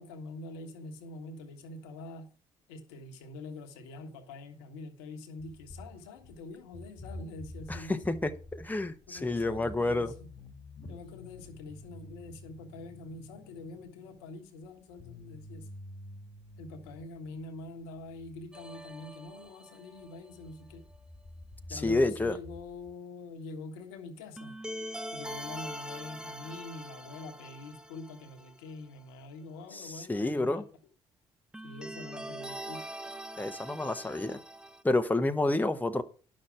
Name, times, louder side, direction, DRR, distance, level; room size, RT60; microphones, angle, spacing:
voice 1, 0.0-2.3 2.7-8.0 9.1-10.3 10.9-15.7 16.6-20.8 21.7-24.5 25.1-30.7 31.6-32.9, left 3 dB, 80° left, 1.4 m, -45 dB
sound 1, 5.4-6.4 6.7-18.8 20.0-20.1 20.3-22.9, left 1 dB, 40° left, 1.4 m, -49 dB
voice 2, 7.7-10.1 21.7-22.4 29.7-30.6 33.4-34.4 34.8-36.0, left 2 dB, 15° left, 1.1 m, -29 dB
sound 2, 18.5-20.4 24.4-28.7 29.0-29.1 31.5-34.8, equal, 5° right, 0.8 m, -43 dB
10.5 x 6.4 x 5.8 m
hypercardioid pair, 45°, 13 cm